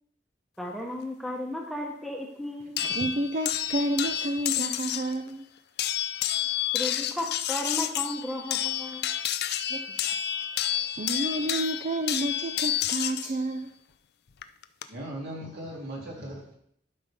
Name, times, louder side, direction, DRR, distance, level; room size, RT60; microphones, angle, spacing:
voice 1, 0.6-2.8 6.7-9.0, left 1 dB, ahead, 0 dB, 1.0 m, -34 dB
sound 1, 2.8-5.1 5.8-13.3 14.4-14.8, left 11 dB, 60° left, 0.5 m, -30 dB
voice 2, 2.8-5.4 9.7-10.0 10.7-13.7, right 1 dB, 45° right, 6 dB, 0.5 m, -30 dB
voice 3, 14.9-16.5, right 1 dB, 60° right, -4 dB, 3.0 m, -38 dB
12.0 x 5.4 x 3.6 m, 0.67 s
head